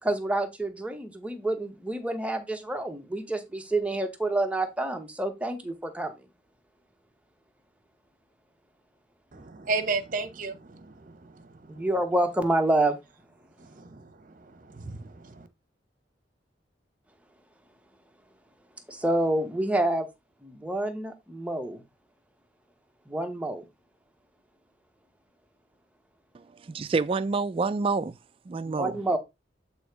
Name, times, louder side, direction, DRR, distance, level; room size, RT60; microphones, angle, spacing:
voice 1, 0.0-6.1 11.7-13.0 18.9-20.1 20.4-21.8 23.1-23.6 28.6-29.2, right 1 dB, 5° right, 0.9 m, -28 dB
voice 2, 9.3-11.9 13.6-15.5, right 3 dB, 45° right, 0.9 m, -35 dB
voice 3, 26.3-28.2 28.5-29.0, right 4 dB, 30° right, 0.3 m, -28 dB
8.0 x 2.9 x 4.6 m
head